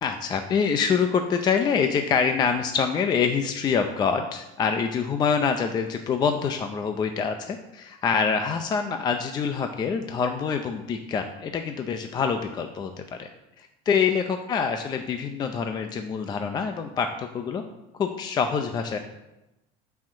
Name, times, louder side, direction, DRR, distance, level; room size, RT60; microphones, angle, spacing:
voice 1, 0.0-13.3 13.6-17.6 18.0-19.0, left 6 dB, 25° left, 6 dB, 0.5 m, -25 dB
7.5 x 5.7 x 7.5 m, 0.96 s
cardioid pair, 160°, 17 cm